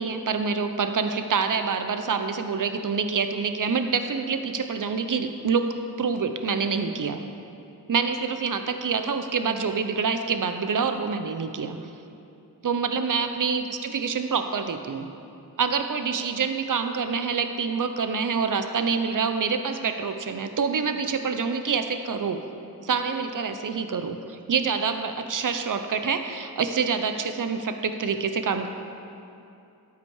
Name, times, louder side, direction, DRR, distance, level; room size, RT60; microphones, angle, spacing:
voice 1, 0.0-5.7 6.0-7.2 7.9-11.8 12.6-15.1 15.6-22.4 22.8-28.7, right 5 dB, 55° right, 8 dB, 0.8 m, -26 dB
12.5 x 8.2 x 4.8 m, 2.7 s
cardioid pair, 60°, 37 cm